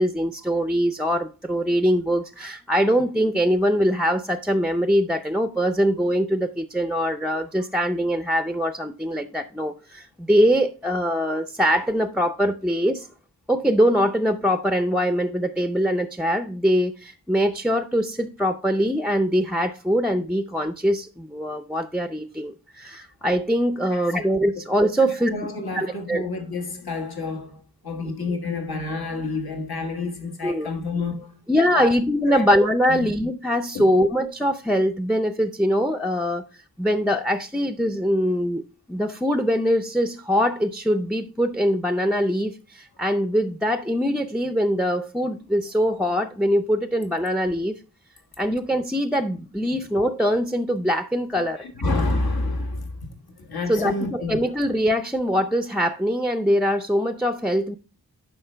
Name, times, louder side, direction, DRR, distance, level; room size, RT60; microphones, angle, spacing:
voice 1, 0.0-13.1 13.5-25.3 25.7-26.3 30.4-30.7 31.5-36.4 36.8-38.6 38.9-47.7 48.4-51.7 53.7-57.8, equal, ahead, 0.5 m, -23 dB
voice 2, 23.9-24.4 25.0-31.4 31.7-31.9 32.3-32.5 32.9-33.1 33.7-33.9 51.4-54.4, left 3 dB, 70° left, 1.5 m, -29 dB
11.0 x 5.1 x 3.3 m
wide cardioid pair, 65°, 38 cm